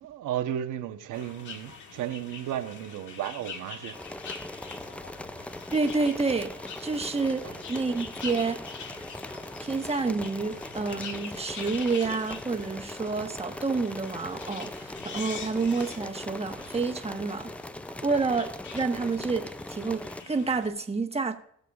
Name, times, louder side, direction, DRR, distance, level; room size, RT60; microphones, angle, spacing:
voice 1, 0.0-4.0 7.4-7.7, right 10 dB, 85° right, 1.1 m, -34 dB
sound 1, 1.1-20.7, left 5 dB, 75° left, 1.6 m, -44 dB
sound 2, 3.9-20.2, left 1 dB, 5° left, 0.3 m, -40 dB
voice 2, 5.7-8.7 9.6-17.5 18.0-21.4, right 4 dB, 20° right, 1.3 m, -29 dB
20.0 x 6.8 x 2.4 m
cardioid pair, 90°, 30 cm